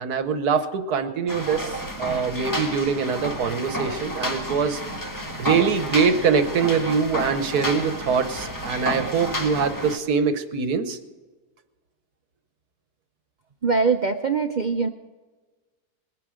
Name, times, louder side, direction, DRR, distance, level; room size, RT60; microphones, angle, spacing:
voice 1, 0.0-4.8 5.4-11.0, right 6 dB, 75° right, 9 dB, 1.5 m, -23 dB
sound 1, 1.3-10.0, equal, 15° left, 1.1 m, -30 dB
voice 2, 13.6-14.9, right 4 dB, 55° right, 6 dB, 0.5 m, -22 dB
21.0 x 9.5 x 5.0 m, 1.3 s
omnidirectional pair, 1.6 m